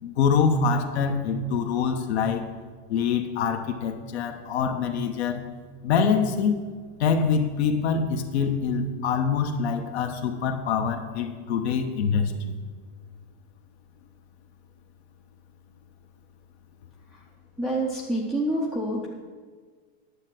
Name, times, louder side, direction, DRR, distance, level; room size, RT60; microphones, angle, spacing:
voice 1, 0.0-2.4 2.9-5.4 5.8-6.6 7.0-12.5, left 6 dB, 70° left, 6 dB, 1.0 m, -25 dB
voice 2, 17.6-19.1, right 1 dB, ahead, -4 dB, 0.4 m, -27 dB
9.8 x 6.7 x 6.0 m, 1.6 s
supercardioid pair, 165°, 34 cm